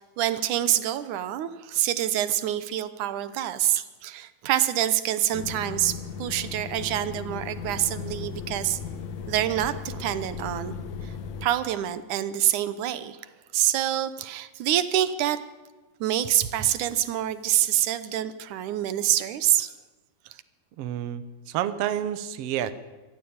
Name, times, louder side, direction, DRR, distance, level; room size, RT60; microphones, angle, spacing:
voice 1, 0.2-8.8 9.3-10.7 11.0-11.1 11.4-15.4 16.0-19.7, right 12 dB, 70° right, 13 dB, 2.0 m, -26 dB
sound 1, 5.3-11.5, left 6 dB, 60° left, 2.1 m, -36 dB
voice 2, 20.8-22.7, right 11 dB, 90° right, 12 dB, 1.3 m, -29 dB
23.5 x 14.5 x 8.7 m, 1.2 s
omnidirectional pair, 4.3 m